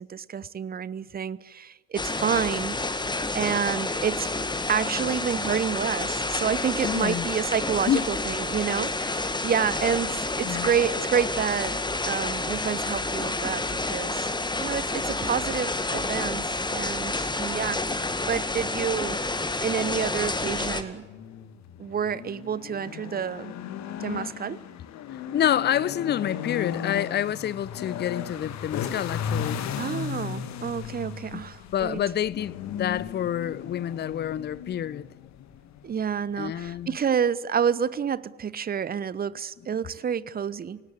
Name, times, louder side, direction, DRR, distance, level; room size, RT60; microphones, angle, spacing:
voice 1, 0.0-2.8 3.3-4.3 4.7-11.8 12.0-14.3 14.6-16.5 16.7-17.8 18.3-19.2 19.6-21.1 21.8-23.5 24.0-24.6 29.8-32.0 35.8-40.8, right 7 dB, 25° right, 0.9 m, -29 dB
sound 1, 2.0-20.8, left 2 dB, 10° left, 2.0 m, -29 dB
voice 2, 6.8-7.3 7.9-8.1 10.5-10.7 25.1-29.7 31.3-31.4 31.7-35.1 36.4-37.0, left 10 dB, 30° left, 0.7 m, -28 dB
sound 2, 20.3-36.9, left 9 dB, 50° left, 1.9 m, -36 dB
29.0 x 18.0 x 8.3 m
figure-of-eight pair, 55°, 36 cm